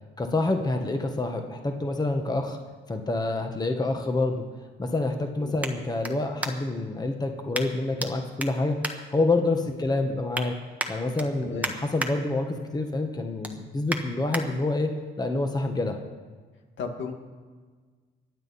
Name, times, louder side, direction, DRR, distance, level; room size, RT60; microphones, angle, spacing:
voice 1, 0.2-2.6 2.9-4.4 4.8-8.8 9.1-10.5 10.9-14.9 15.2-16.0, left 2 dB, 20° left, 4 dB, 1.4 m, -27 dB
sound 1, 2.8-6.9 7.5-8.1 8.4-9.7 10.1-10.5 10.8-12.1 12.5-12.8 13.1-14.4 15.0-15.1, right 1 dB, 5° right, 1.4 m, -35 dB
voice 2, 16.8-17.1, left 5 dB, 70° left, 3 dB, 2.1 m, -34 dB
24.5 x 8.9 x 4.2 m, 1.5 s
cardioid pair, 90°, 20 cm